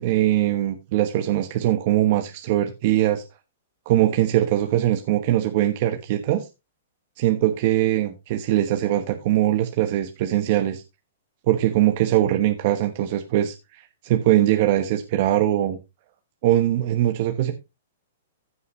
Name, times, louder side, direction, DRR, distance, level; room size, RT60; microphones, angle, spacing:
voice 1, 0.0-3.2 3.9-6.5 7.2-10.8 11.5-15.8 16.4-17.5, right 13 dB, 50° right, 1.1 m, -21 dB
15.5 x 5.6 x 3.2 m
hypercardioid pair, 135°, 0 cm